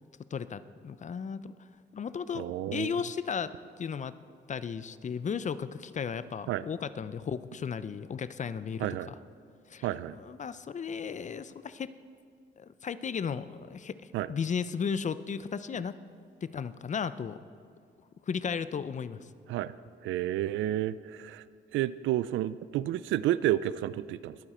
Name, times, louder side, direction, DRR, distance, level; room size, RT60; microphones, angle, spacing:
voice 1, 0.3-1.5 1.9-3.5 3.8-4.1 4.5-9.1 9.7-9.9 10.1-11.9 12.6-14.0 14.3-16.0 16.4-17.4 18.3-19.3, left 6 dB, 40° left, 14 dB, 0.6 m, -35 dB
voice 2, 2.3-3.0 6.5-6.6 8.8-9.1 9.8-10.2 14.1-14.3 19.5-19.7 20.0-21.4 21.7-24.4, right 13 dB, 90° right, 16 dB, 0.4 m, -30 dB
21.5 x 9.0 x 4.4 m, 2.2 s
cardioid pair, 85°, 19 cm